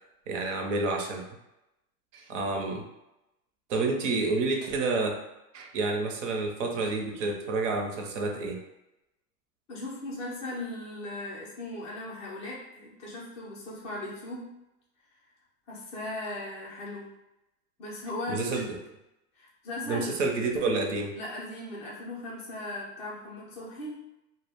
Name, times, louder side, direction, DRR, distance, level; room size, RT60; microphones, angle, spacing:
voice 1, 0.3-1.2 2.1-2.9 3.7-5.2 5.5-8.6 18.3-18.8 19.9-21.1, right 3 dB, 50° right, 2 dB, 0.6 m, -29 dB
voice 2, 9.7-14.5 15.7-17.1 17.8-18.6 19.4-20.2 21.1-24.0, left 2 dB, 15° left, -6 dB, 0.4 m, -38 dB
2.2 x 2.1 x 3.3 m, 0.91 s
hypercardioid pair, 130°, 47 cm